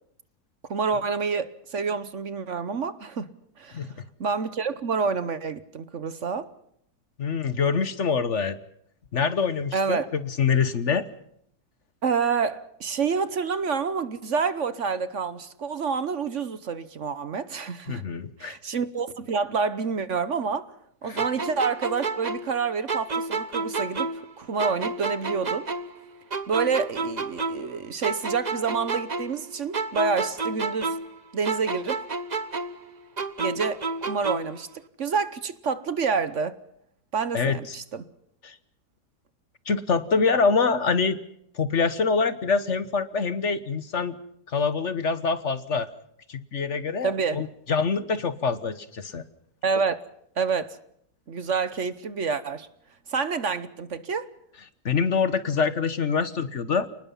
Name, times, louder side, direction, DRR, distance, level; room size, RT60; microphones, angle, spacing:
voice 1, 0.7-3.3 3.6-3.9 4.2-6.5 9.7-10.1 12.0-18.0 18.4-20.7 21.0-25.7 26.5-31.0 31.3-32.0 33.4-36.6 37.1-38.0 47.0-47.4 49.6-50.0 50.4-50.8 51.3-52.7 53.1-54.3, right 5 dB, 50° right, 1.3 m, -28 dB
voice 2, 7.2-8.6 9.1-11.1 17.9-18.6 21.1-21.2 37.3-37.6 38.4-38.6 39.7-41.2 41.5-44.2 44.5-45.9 46.3-49.2 54.8-56.9, left 5 dB, 50° left, 1.4 m, -25 dB
sound 1, 21.2-24.3 24.6-27.7 28.0-31.2 31.4-34.6, right 3 dB, 30° right, 1.0 m, -30 dB
29.5 x 19.5 x 5.6 m
omnidirectional pair, 1.7 m